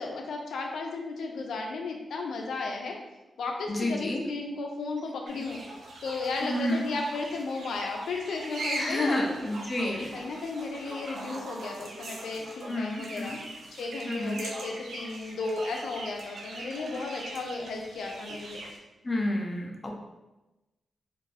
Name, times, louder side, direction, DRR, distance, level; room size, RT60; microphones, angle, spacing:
voice 1, 0.0-3.0 3.4-5.6 6.0-9.3 9.8-13.3 13.7-18.6, left 3 dB, 85° left, 1 dB, 0.4 m, -34 dB
voice 2, 3.7-4.2 6.4-6.8 8.8-10.1 12.7-13.4 14.1-14.4 19.0-19.9, left 1 dB, 25° left, 0 dB, 0.4 m, -30 dB
sound 1, 5.3-18.8, right 2 dB, 70° right, 0.5 m, -41 dB
2.5 x 2.5 x 3.2 m, 1.1 s
wide cardioid pair, 115°, 0 cm